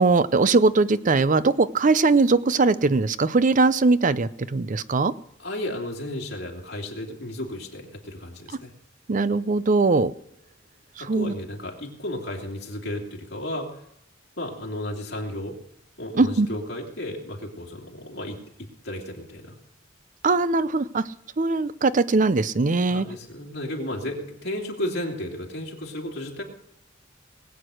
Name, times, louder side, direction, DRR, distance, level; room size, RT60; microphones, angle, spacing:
voice 1, 0.0-5.1 9.1-10.1 11.0-11.3 16.2-16.5 20.2-21.0 21.4-23.0, right 3 dB, 40° right, 16 dB, 0.6 m, -20 dB
voice 2, 5.4-8.7 11.0-13.8 14.4-15.5 16.0-18.4 18.8-19.5 22.9-26.4, left 1 dB, 60° left, 0 dB, 2.9 m, -33 dB
20.5 x 8.2 x 6.4 m, 0.80 s
head